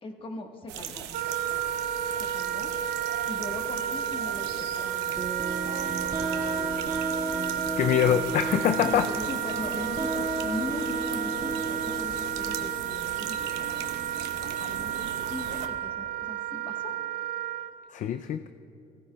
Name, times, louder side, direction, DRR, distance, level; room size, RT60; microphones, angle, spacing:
voice 1, 0.0-1.1 2.2-2.7 3.3-5.5 8.1-8.2 8.8-17.0 18.0-18.2, left 2 dB, 30° left, 3 dB, 1.3 m, -40 dB
sound 1, 0.7-15.7, right 9 dB, 90° right, 0.8 m, -40 dB
Wind instrument woodwind instrument, 1.1-17.7, right 11 dB, 60° right, 0.5 m, -32 dB
sound 2, 5.2-12.7, right 1 dB, 25° right, 1.8 m, -33 dB
voice 2, 7.8-9.1 17.9-18.5, left 10 dB, 50° left, 10 dB, 0.4 m, -24 dB
17.0 x 15.5 x 2.3 m, 2.7 s
cardioid pair, 110°, 17 cm